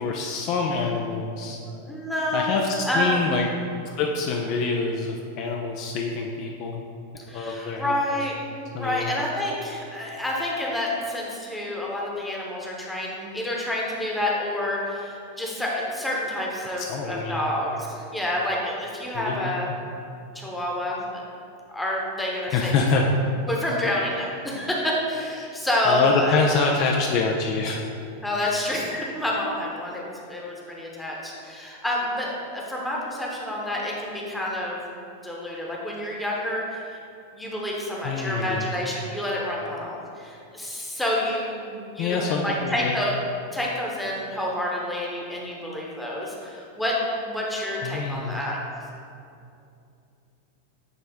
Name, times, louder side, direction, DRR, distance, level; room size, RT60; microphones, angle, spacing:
voice 1, 0.0-1.6 2.3-3.5 3.8-6.8 7.3-8.1 8.7-9.1 16.8-17.4 19.1-19.7 22.5-23.0 25.9-27.8 38.0-38.7 42.0-43.0 47.8-48.4, left 4 dB, 40° left, 1 dB, 0.5 m, -26 dB
voice 2, 1.6-3.3 7.3-8.3 8.7-19.7 20.3-21.2 21.7-22.7 23.5-26.4 28.2-34.9 35.2-37.0 37.3-43.2 43.5-46.9 47.2-48.6, left 1 dB, 5° left, -3 dB, 1.0 m, -28 dB
8.7 x 3.2 x 3.5 m, 2.6 s
figure-of-eight pair, 90°, 0 cm